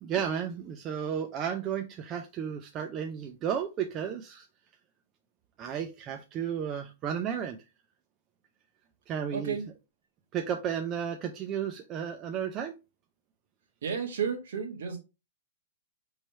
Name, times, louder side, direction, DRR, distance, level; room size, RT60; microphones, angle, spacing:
voice 1, 0.0-4.5 5.6-7.6 9.1-9.6 10.3-12.7, right 8 dB, 20° right, 0.3 m, -33 dB
voice 2, 9.3-9.7 13.8-15.0, right 6 dB, 65° right, 1.0 m, -32 dB
5.4 x 3.1 x 3.0 m
hypercardioid pair, 175°, 0 cm